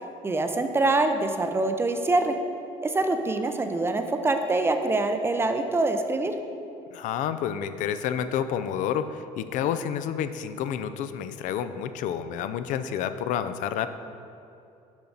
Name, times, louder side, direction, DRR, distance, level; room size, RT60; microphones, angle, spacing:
voice 1, 0.2-2.4 2.8-6.3, right 2 dB, 15° right, 6 dB, 0.4 m, -25 dB
voice 2, 6.9-13.9, left 9 dB, 70° left, 11 dB, 0.4 m, -29 dB
7.1 x 5.8 x 3.9 m, 2.7 s
cardioid pair, 120°, 14 cm